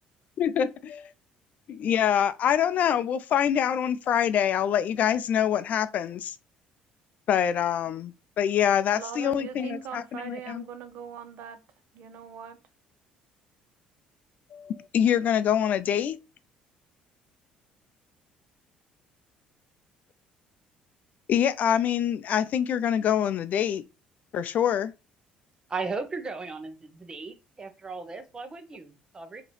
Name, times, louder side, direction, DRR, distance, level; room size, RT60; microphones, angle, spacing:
voice 1, 0.4-1.1 1.7-6.4 7.3-10.6 14.5-16.2 21.3-23.8 24.3-24.9, left 9 dB, 55° left, 0.4 m, -25 dB
voice 2, 8.9-11.6 11.9-12.6, right 7 dB, 70° right, 0.8 m, -40 dB
voice 3, 25.7-29.4, right 4 dB, 25° right, 1.0 m, -36 dB
5.0 x 2.9 x 3.2 m
cardioid pair, 100°, 3 cm